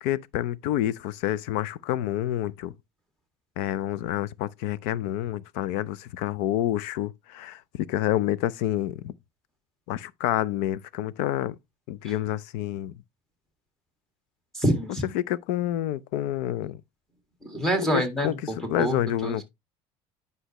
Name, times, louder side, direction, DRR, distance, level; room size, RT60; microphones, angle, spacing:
voice 1, 0.0-2.7 3.6-9.1 9.9-11.6 11.9-12.9 15.1-16.8 17.8-19.4, left 13 dB, 85° left, 0.5 m, -28 dB
voice 2, 14.5-15.1 17.4-18.3 18.8-19.0 19.2-19.4, right 1 dB, 5° left, 1.9 m, -26 dB
10.0 x 5.4 x 3.0 m
cardioid pair, 155°, 11 cm